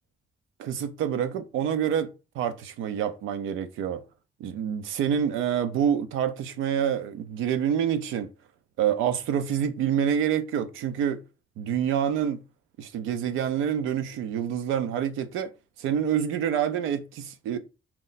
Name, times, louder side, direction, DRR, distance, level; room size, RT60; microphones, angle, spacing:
voice 1, 0.6-2.1 2.3-4.0 4.4-8.3 8.8-11.2 11.6-12.4 12.8-15.5 15.8-17.6, right 9 dB, 90° right, 0.5 m, -27 dB
4.3 x 2.1 x 3.9 m
cardioid pair, 90°, 20 cm